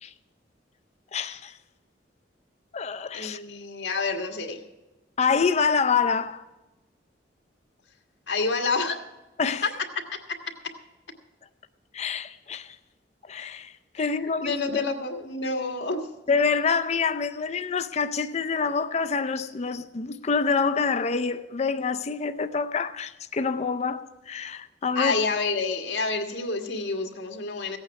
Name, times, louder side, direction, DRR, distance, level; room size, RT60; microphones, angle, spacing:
voice 1, 1.1-1.5 2.7-3.4 5.2-6.4 9.4-9.7 11.9-12.8 13.3-14.6 16.3-25.2, left 5 dB, 40° left, 0.5 m, -26 dB
voice 2, 3.1-4.6 8.3-9.0 10.1-10.4 14.0-16.1 24.9-27.8, left 3 dB, 85° left, 1.7 m, -28 dB
16.0 x 8.8 x 5.8 m
head